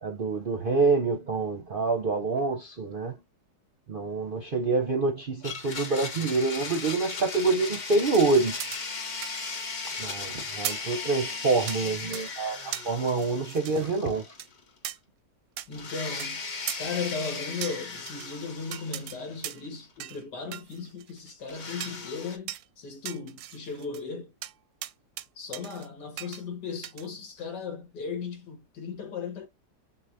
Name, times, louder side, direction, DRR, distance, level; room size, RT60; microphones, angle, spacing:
voice 1, 0.0-3.2 3.9-8.7 10.0-14.4, right 3 dB, 50° right, 0.6 m, -26 dB
Domestic sounds home sounds, 5.4-14.6 14.9-15.0 15.7-19.7 21.5-22.4, left 4 dB, 40° left, 0.7 m, -37 dB
sound 1, 8.1-9.9 10.2-10.3 10.6-10.9 11.7-11.8 12.1-12.3 12.7-13.9 14.4-14.5 14.8-15.0 15.6-15.7 16.2-16.3 16.7-16.8 17.6-18.3 18.7-19.2 19.4-19.7 20.0-20.2 20.5-21.3 21.8-22.0 22.5-22.6 23.0-24.0 24.4-24.5 24.8-25.3 25.5-25.9 26.2-26.4 26.8-27.1, right 13 dB, 70° right, 0.9 m, -38 dB
voice 2, 15.7-16.4 16.8-24.3 25.4-29.5, left 5 dB, 75° left, 2.3 m, -36 dB
6.8 x 2.3 x 2.7 m
omnidirectional pair, 1.9 m